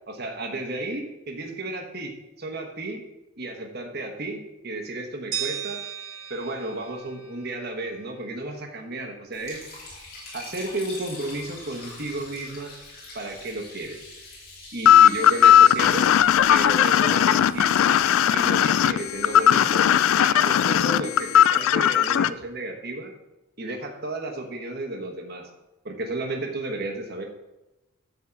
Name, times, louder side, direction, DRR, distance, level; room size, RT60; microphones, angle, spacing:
voice 1, 0.1-3.0 3.4-5.8 6.3-9.7 10.3-12.7 13.1-14.0 14.7-16.1 16.5-17.7 18.3-19.9 20.2-23.1 23.6-25.5 25.8-27.3, right 2 dB, 50° right, 2 dB, 1.2 m, -33 dB
sound 1, 5.3-8.2, right 10 dB, 90° right, 1.3 m, -36 dB
Liquid, 9.3-19.5, left 2 dB, 45° left, 3.0 m, -44 dB
sound 2, 14.9-22.3, left 10 dB, 70° left, 0.3 m, -17 dB
9.7 x 4.1 x 7.2 m, 1.0 s
head